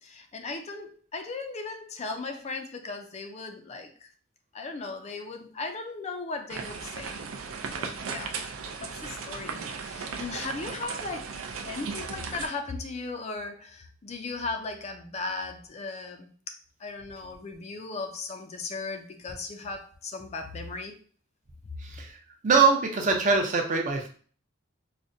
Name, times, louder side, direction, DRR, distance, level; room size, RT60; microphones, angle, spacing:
voice 1, 0.0-4.1 4.5-7.2 7.7-8.4 8.8-11.3 11.6-16.3 16.8-21.0, left 3 dB, 35° left, 5 dB, 0.4 m, -37 dB
sound 1, 6.5-12.5, right 5 dB, 85° right, 0.5 m, -36 dB
voice 2, 21.8-22.2 22.4-24.1, right 4 dB, 40° right, 3 dB, 0.6 m, -23 dB
4.9 x 2.1 x 2.6 m, 0.42 s
head